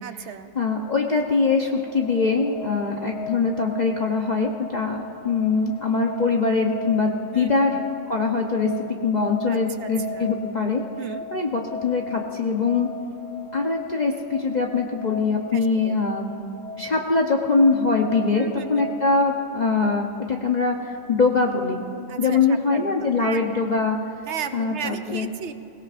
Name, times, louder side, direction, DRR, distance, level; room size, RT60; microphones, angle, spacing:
voice 1, 0.0-0.5 7.3-7.8 9.5-10.3 11.0-11.2 15.5-16.0 18.3-19.0 22.1-23.8 24.3-25.5, right 7 dB, 65° right, 9 dB, 0.8 m, -35 dB
voice 2, 0.6-7.8 8.1-8.7 9.0-10.8 11.3-12.9 13.5-16.3 16.8-21.8 22.2-24.0 24.5-25.3, left 4 dB, 40° left, 1 dB, 0.8 m, -22 dB
sound 1, 1.0-19.1, left 5 dB, 70° left, 1.1 m, -38 dB
22.5 x 17.5 x 2.5 m, 2.7 s
omnidirectional pair, 1.4 m